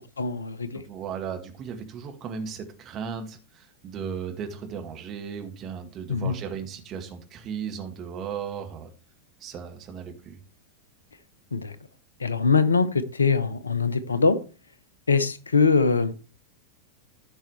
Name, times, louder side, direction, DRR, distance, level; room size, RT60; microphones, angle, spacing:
voice 1, 0.2-0.8 6.1-6.3 11.5-11.8 12.2-14.4 15.1-16.2, left 4 dB, 75° left, 0.8 m, -22 dB
voice 2, 0.7-8.9 9.4-10.4, right 7 dB, 30° right, 1.9 m, -36 dB
15.0 x 5.5 x 3.2 m
figure-of-eight pair, 90°, 0 cm